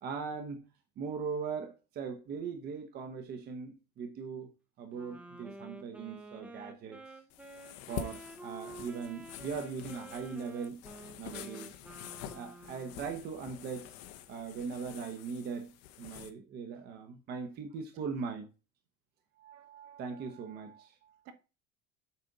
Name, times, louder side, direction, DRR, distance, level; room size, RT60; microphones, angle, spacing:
voice 1, 0.0-0.6 1.0-4.5 4.8-7.0 7.9-10.8 11.2-11.7 12.3-13.9 14.3-15.7 16.0-18.5 20.0-20.9, right 5 dB, 35° right, 0.9 m, -39 dB
Wind instrument woodwind instrument, 4.9-13.2, right 2 dB, 5° right, 0.6 m, -50 dB
sound 1, 7.3-16.3, left 10 dB, 55° left, 1.0 m, -47 dB
voice 2, 19.3-21.3, right 10 dB, 55° right, 1.3 m, -55 dB
8.5 x 5.0 x 4.0 m
cardioid pair, 175°, 30 cm